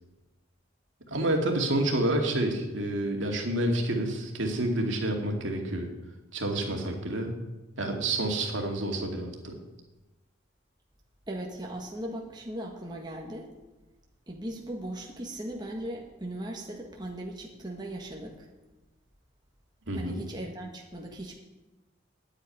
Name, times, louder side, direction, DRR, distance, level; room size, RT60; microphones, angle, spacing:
voice 1, 1.1-5.9 6.3-7.3 7.8-9.6 19.9-20.2, right 1 dB, 70° right, 2 dB, 2.4 m, -28 dB
voice 2, 11.3-13.5 14.3-18.5 19.9-21.3, right 1 dB, 20° right, 0 dB, 1.5 m, -38 dB
9.5 x 8.9 x 9.9 m, 1.1 s
head